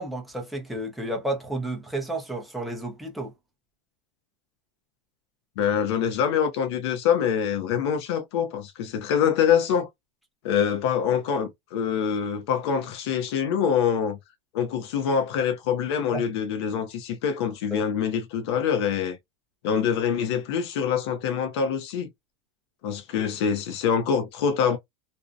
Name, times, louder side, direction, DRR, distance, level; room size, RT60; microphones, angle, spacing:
voice 1, 0.0-3.3 16.1-16.2 17.7-17.9, right 1 dB, ahead, 0.5 m, -31 dB
voice 2, 5.6-9.9 10.4-14.2 14.5-19.2 19.6-22.1 22.8-24.8, left 7 dB, 60° left, 0.5 m, -25 dB
2.5 x 2.0 x 2.4 m
supercardioid pair, 160°, 15 cm